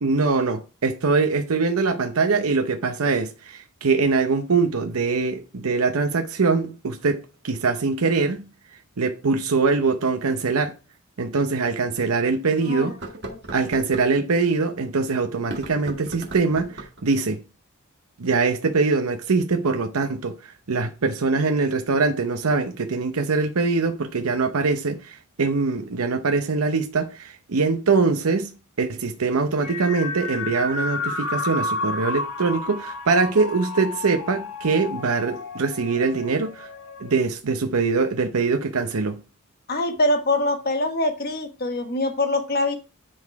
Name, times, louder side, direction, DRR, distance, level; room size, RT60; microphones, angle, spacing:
voice 1, 0.0-8.5 9.0-10.7 11.2-13.0 13.5-17.4 18.2-20.3 20.7-28.5 28.8-36.7 37.0-39.2, right 4 dB, 80° right, 0.7 m, -23 dB
sound 1, 10.9-11.0 11.6-11.7 12.9-14.1 15.4-17.0, right 2 dB, 55° right, 1.5 m, -37 dB
sound 2, 29.6-37.2, left 2 dB, 85° left, 1.6 m, -31 dB
voice 2, 39.7-42.8, left 1 dB, 45° left, 1.4 m, -24 dB
10.0 x 4.1 x 4.7 m
head